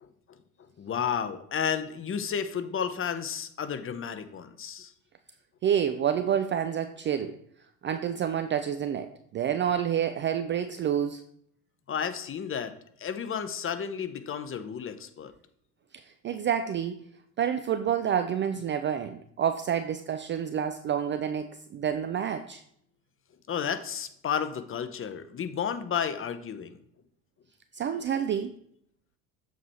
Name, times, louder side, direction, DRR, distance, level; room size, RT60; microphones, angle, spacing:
voice 1, 0.0-0.4 0.8-4.9 11.9-12.7 13.0-15.3 23.5-26.8, left 7 dB, 25° left, 10 dB, 0.7 m, -32 dB
voice 2, 5.6-7.4 7.8-11.2 16.2-17.0 17.4-22.6 27.7-28.6, right 9 dB, 25° right, 8 dB, 0.4 m, -28 dB
7.3 x 4.5 x 4.1 m, 0.68 s
hypercardioid pair, 75°, 47 cm